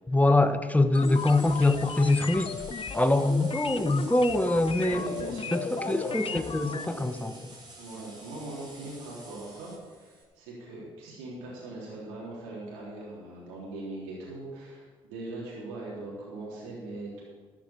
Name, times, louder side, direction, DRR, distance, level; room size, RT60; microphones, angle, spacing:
voice 1, 0.1-2.5 2.9-5.1 5.5-6.7 7.0-7.3, left 2 dB, 10° left, 11 dB, 0.9 m, -24 dB
sound 1, 0.9-6.8, left 6 dB, 35° left, 0.7 m, -36 dB
sound 2, 0.9-10.2, right 2 dB, 30° right, 3.8 m, -49 dB
voice 2, 4.7-7.4 7.8-17.2, right 2 dB, 80° right, -6 dB, 3.5 m, -40 dB
13.0 x 6.0 x 8.5 m, 1.4 s
hypercardioid pair, 50°, 16 cm